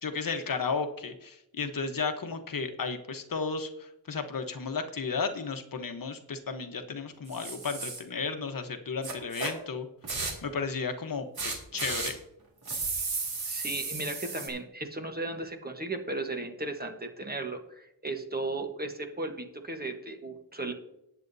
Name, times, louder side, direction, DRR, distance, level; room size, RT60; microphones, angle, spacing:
voice 1, 0.0-9.9 10.4-12.2, left 5 dB, 55° left, 6 dB, 1.1 m, -34 dB
sound 1, 7.3-8.0 9.0-9.5 10.0-10.5 11.3-12.1 12.6-14.5, right 4 dB, 65° right, 2.7 m, -34 dB
voice 2, 13.4-20.7, right 2 dB, 25° right, 4 dB, 1.2 m, -35 dB
18.5 x 8.1 x 2.7 m, 0.82 s
wide cardioid pair, 140°, 41 cm